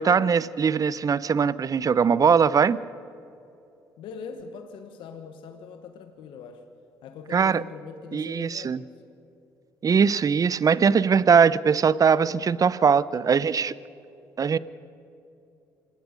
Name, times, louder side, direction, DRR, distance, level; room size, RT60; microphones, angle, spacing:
voice 1, 0.0-2.8 7.3-7.6 8.1-8.8 9.8-13.8 14.4-14.6, right 6 dB, 45° right, 19 dB, 0.8 m, -21 dB
voice 2, 4.0-6.7 7.0-9.0, left 5 dB, 75° left, 7 dB, 1.4 m, -42 dB
26.5 x 19.0 x 5.3 m, 2.8 s
hypercardioid pair, 55°, 9 cm